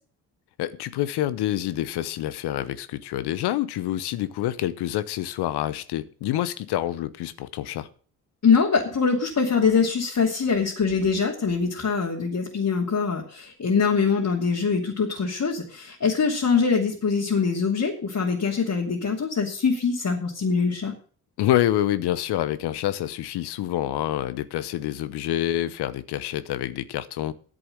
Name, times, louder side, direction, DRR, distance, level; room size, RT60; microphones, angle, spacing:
voice 1, 0.6-7.9 21.4-27.3, left 13 dB, 80° left, 0.9 m, -27 dB
voice 2, 8.4-20.9, left 5 dB, 45° left, 2.7 m, -23 dB
10.0 x 7.8 x 7.8 m
supercardioid pair, 55°, 39 cm